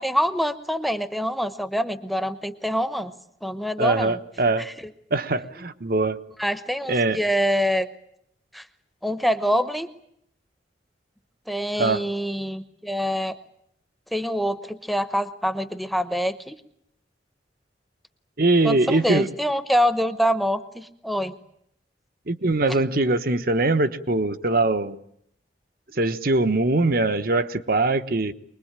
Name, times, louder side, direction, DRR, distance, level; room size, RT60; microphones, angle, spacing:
voice 1, 0.0-3.1 3.4-4.2 4.6-4.7 6.4-7.9 8.5-8.6 9.0-9.9 11.5-13.4 14.1-16.6 18.6-21.3, equal, ahead, 11 dB, 0.9 m, -25 dB
voice 2, 3.8-4.7 5.1-6.2 6.9-7.2 11.8-12.0 18.4-19.3 22.3-25.0 26.0-28.3, right 2 dB, 55° right, 10 dB, 1.1 m, -22 dB
24.0 x 21.0 x 8.9 m, 0.72 s
head